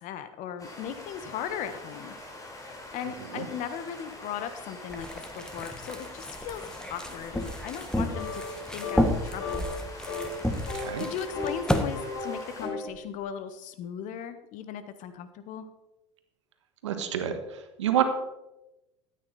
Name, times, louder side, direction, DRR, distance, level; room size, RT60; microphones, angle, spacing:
voice 1, 0.0-2.2 2.9-5.1 5.3-6.6 6.9-8.4 8.7-9.7 11.0-15.7, left 8 dB, 60° left, 11 dB, 1.4 m, -37 dB
sound 1, 0.6-12.7, left 2 dB, 20° left, 3.8 m, -44 dB
sound 2, 4.9-11.8, left 1 dB, 5° left, 1.6 m, -32 dB
sound 3, 8.1-8.6 8.8-9.1 9.4-9.8 10.1-10.3 10.7-11.7 11.9-12.9, left 3 dB, 75° left, 3.4 m, -34 dB
voice 2, 10.7-11.0 16.8-17.4 17.8-18.0, right 11 dB, 85° right, 8 dB, 1.4 m, -27 dB
14.0 x 9.0 x 4.3 m, 0.93 s
hypercardioid pair, 75°, 15 cm